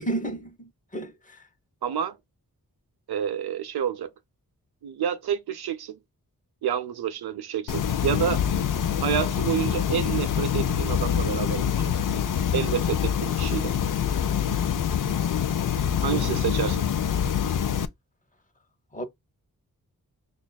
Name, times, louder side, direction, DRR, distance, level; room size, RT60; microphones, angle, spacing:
voice 1, 0.0-1.5 16.1-16.5 18.9-19.0, right 2 dB, 20° left, 0.8 m, -33 dB
voice 2, 1.8-2.2 3.1-4.1 4.8-6.0 6.6-8.4 9.0-11.9 12.5-13.7 16.0-16.9, right 9 dB, 90° right, 0.5 m, -28 dB
sound 1, 7.7-17.8, left 8 dB, 60° left, 0.5 m, -25 dB
5.7 x 2.4 x 2.3 m
cardioid pair, 55°, 37 cm